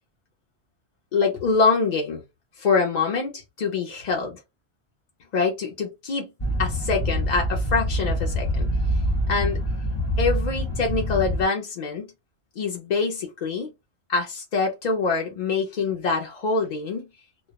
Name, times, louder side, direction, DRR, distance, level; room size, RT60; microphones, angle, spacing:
voice 1, 1.1-2.2 2.6-4.4 5.3-6.3 6.6-9.0 9.3-9.6 10.2-12.1 12.6-13.7 14.1-17.1, left 4 dB, 55° left, 0.4 m, -25 dB
sound 1, 6.4-11.4, equal, 25° left, 0.9 m, -25 dB
2.2 x 2.1 x 2.7 m
omnidirectional pair, 1.3 m